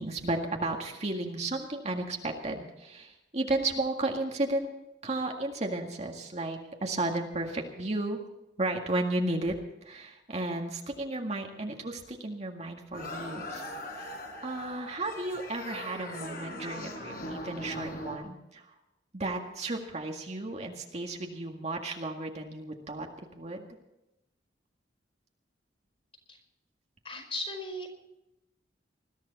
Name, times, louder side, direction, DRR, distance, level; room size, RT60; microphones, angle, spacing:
voice 1, 0.0-4.7 5.0-8.2 8.6-9.6 9.8-13.6 14.0-14.2 14.4-18.7 19.1-23.1 23.4-23.7, right 2 dB, 40° right, 2 dB, 1.9 m, -33 dB
sound 1, 12.9-18.2, left 1 dB, 55° left, 4.4 m, -40 dB
voice 2, 27.0-27.9, left 1 dB, 35° left, 5 dB, 5.0 m, -36 dB
21.0 x 14.0 x 4.1 m, 0.91 s
head